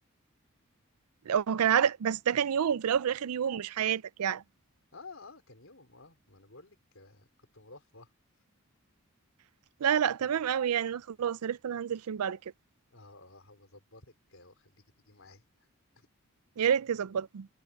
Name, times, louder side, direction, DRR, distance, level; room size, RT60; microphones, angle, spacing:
voice 1, 1.3-4.4 9.8-12.4 16.6-17.5, right 8 dB, 85° right, 0.4 m, -28 dB
voice 2, 4.9-7.3 7.5-8.1 12.9-15.4 15.9-16.1, left 3 dB, 65° left, 4.2 m, -53 dB
head